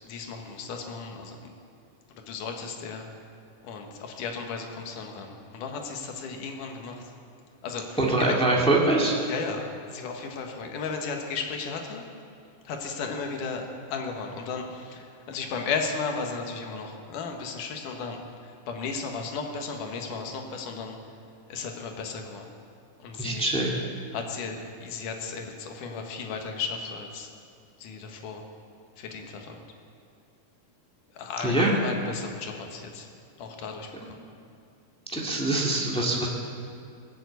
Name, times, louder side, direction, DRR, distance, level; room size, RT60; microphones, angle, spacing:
voice 1, 0.1-1.5 2.3-3.1 3.6-7.0 7.6-8.3 9.3-12.0 12.7-13.6 13.9-15.0 15.3-18.2 18.7-21.0 21.5-22.5 23.0-23.5 24.1-27.3 27.8-28.4 29.0-29.6 31.2-33.1 33.4-34.1, left 5 dB, 80° left, 3 dB, 2.9 m, -35 dB
voice 2, 8.0-9.1 23.2-23.7 31.4-31.7 35.1-36.3, right 2 dB, 5° left, -3 dB, 0.7 m, -23 dB
20.5 x 7.3 x 8.1 m, 2.4 s
omnidirectional pair, 3.7 m